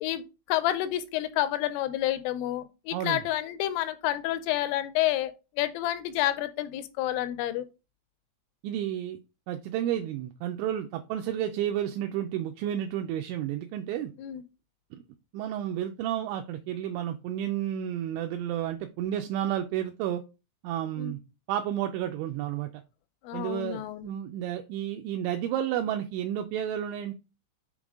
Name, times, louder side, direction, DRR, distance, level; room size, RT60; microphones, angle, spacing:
voice 1, 0.0-7.7 14.2-14.4 21.0-21.2 23.2-24.1, left 14 dB, 85° left, 3.1 m, -29 dB
voice 2, 8.6-9.2 9.5-14.1 14.9-15.0 15.3-20.2 20.6-21.2 21.5-22.7 23.3-27.1, right 11 dB, 85° right, 2.7 m, -31 dB
7.1 x 3.8 x 3.5 m
omnidirectional pair, 5.6 m